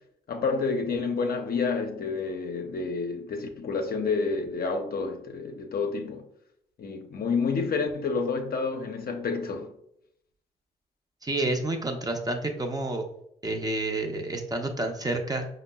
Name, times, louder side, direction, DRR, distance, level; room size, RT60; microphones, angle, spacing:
voice 1, 0.3-6.3 6.8-9.7, left 4 dB, 45° left, 0.5 m, -29 dB
voice 2, 11.2-13.0 13.4-15.5, right 2 dB, 20° right, 0.6 m, -29 dB
5.0 x 2.0 x 2.2 m
hypercardioid pair, 45°, 21 cm